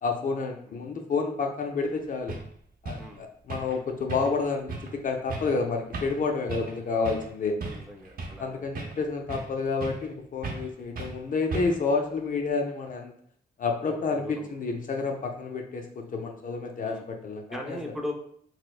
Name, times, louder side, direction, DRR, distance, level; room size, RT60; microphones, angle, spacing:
voice 1, 0.0-2.4 2.8-7.6 8.4-13.1 13.6-17.8, left 4 dB, 50° left, 3 dB, 0.4 m, -29 dB
sound 1, 1.8-1.9 2.3-2.5 2.8-3.1 3.5-3.8 4.1-4.4 4.7-4.9 5.3-5.5 5.9-6.2 6.5-6.8 7.0-7.3 7.6-8.4 8.7-9.5 9.8-10.1 10.4-10.7 10.9-11.2 11.5-11.9, right 3 dB, 55° right, 0.7 m, -36 dB
voice 2, 7.7-9.1 14.0-14.5 16.9-17.0 17.5-18.1, left 1 dB, ahead, 1 dB, 0.5 m, -39 dB
4.2 x 2.1 x 2.3 m, 0.63 s
cardioid pair, 80°, 18 cm